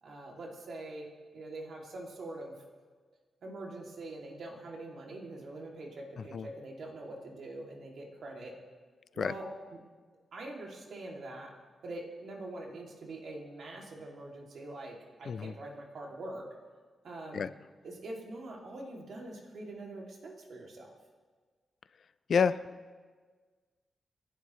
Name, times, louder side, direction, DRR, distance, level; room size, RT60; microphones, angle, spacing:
voice 1, 0.0-2.5 3.4-8.6 9.1-9.8 10.3-11.5 11.8-16.5 17.0-17.5 17.8-20.9, right 2 dB, 70° right, -1 dB, 2.6 m, -44 dB
voice 2, 22.3-22.6, left 6 dB, 60° left, 15 dB, 0.4 m, -28 dB
29.0 x 11.0 x 3.2 m, 1.5 s
wide cardioid pair, 140°, 0 cm